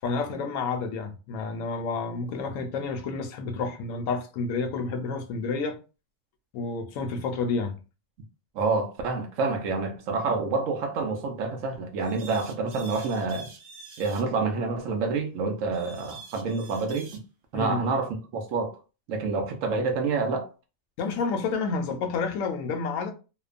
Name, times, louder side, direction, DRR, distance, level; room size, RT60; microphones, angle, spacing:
voice 1, 0.0-5.8 6.5-7.7 17.5-17.8 21.0-23.1, left 4 dB, 80° left, 1.0 m, -30 dB
voice 2, 8.5-13.5 14.0-17.2 17.5-18.8 19.1-20.5, right 4 dB, 75° right, 1.0 m, -28 dB
sound 1, 12.0-14.3 15.7-17.2, right 4 dB, 55° right, 0.6 m, -46 dB
2.9 x 2.1 x 2.4 m
omnidirectional pair, 1.4 m